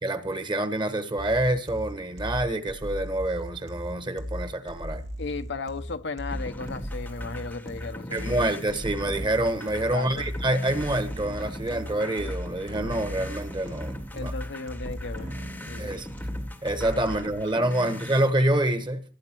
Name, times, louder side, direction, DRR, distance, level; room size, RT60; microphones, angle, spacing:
voice 1, 0.0-5.0 8.1-14.3 15.3-15.4 15.8-16.1 16.6-19.0, right 1 dB, 25° right, 1.2 m, -27 dB
sound 1, 1.2-17.2, equal, 80° right, 2.2 m, -37 dB
voice 2, 5.2-8.4 9.9-10.2 14.1-15.3 15.6-16.0, left 4 dB, 65° left, 0.8 m, -35 dB
sound 2, 6.3-18.3, left 1 dB, 10° left, 0.9 m, -41 dB
18.0 x 9.2 x 4.5 m
head